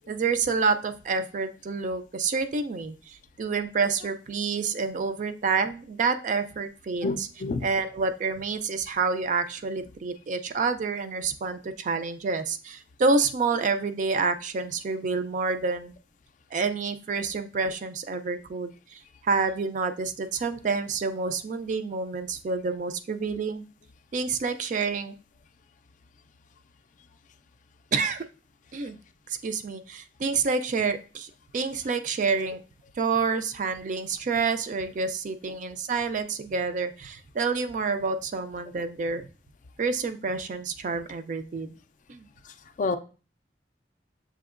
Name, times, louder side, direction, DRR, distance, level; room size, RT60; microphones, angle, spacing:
voice 1, 0.1-7.3 7.6-15.9 16.5-23.6 24.1-25.1 27.9-28.3 28.7-29.0 29.3-32.6 33.0-39.3 39.8-41.8 42.1-42.3, right 4 dB, 45° right, 9 dB, 0.3 m, -28 dB
voice 2, 7.0-7.7 42.4-43.0, left 3 dB, 45° left, 10 dB, 0.3 m, -29 dB
6.8 x 2.8 x 2.4 m, 0.35 s
head